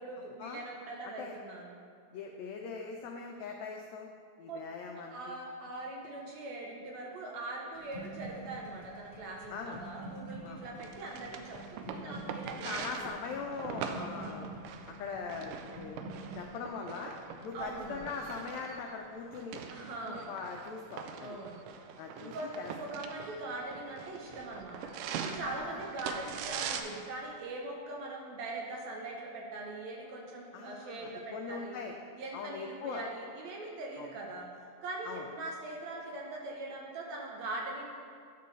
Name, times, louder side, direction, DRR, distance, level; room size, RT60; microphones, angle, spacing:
voice 1, 0.0-1.8 4.5-4.6 4.9-12.7 13.0-13.2 14.1-14.5 17.5-18.2 19.7-20.3 21.2-21.6 22.1-31.8 32.2-34.5 34.8-37.8, right 2 dB, 70° right, -1 dB, 1.8 m, -42 dB
voice 2, 1.0-1.4 2.1-4.1 4.4-5.3 9.5-9.8 10.4-10.6 12.0-12.1 12.6-14.5 15.0-16.0 16.3-17.1 17.4-19.6 20.1-21.4 22.0-22.7 25.4-25.8 30.5-32.0 32.3-33.0 34.0-34.1 35.0-35.2, left 5 dB, 90° left, 2 dB, 1.5 m, -41 dB
sound 1, 7.7-19.6 19.9-20.3, right 2 dB, 35° right, 1.6 m, -48 dB
sound 2, 10.8-26.8, right 7 dB, 90° right, 2.2 m, -43 dB
10.5 x 6.8 x 3.2 m, 2.3 s
omnidirectional pair, 3.7 m